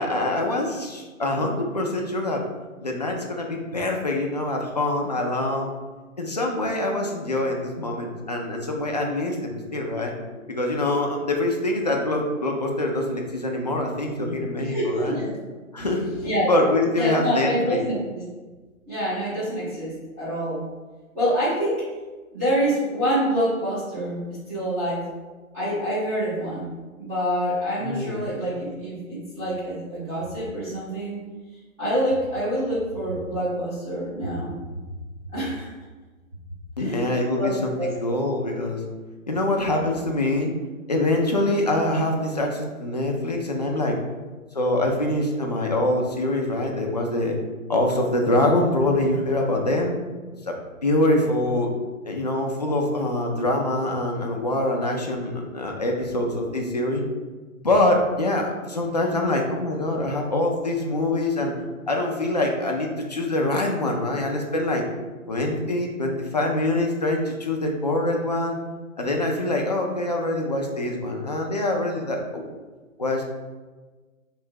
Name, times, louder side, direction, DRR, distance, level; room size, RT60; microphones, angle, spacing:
voice 1, 0.0-2.4 2.8-5.7 6.2-10.1 10.5-15.2 15.7-16.1 16.5-17.8 27.8-28.3 36.8-38.8 39.3-40.5 40.9-44.0 44.5-47.4 47.7-49.9 50.4-51.7 52.0-57.0 57.6-61.5 61.9-64.8 65.3-68.6 69.0-72.4 73.0-73.2, left 1 dB, 30° left, 1 dB, 0.4 m, -24 dB
voice 2, 14.6-15.3 15.8-15.9 16.2-16.5 16.9-18.2 18.9-20.6 21.1-21.8 22.3-25.0 25.5-26.7 27.0-31.2 31.8-34.5 35.3-35.7 36.8-38.2, equal, 10° right, -12 dB, 0.7 m, -26 dB
3.5 x 3.2 x 4.6 m, 1.3 s
hypercardioid pair, 155°, 42 cm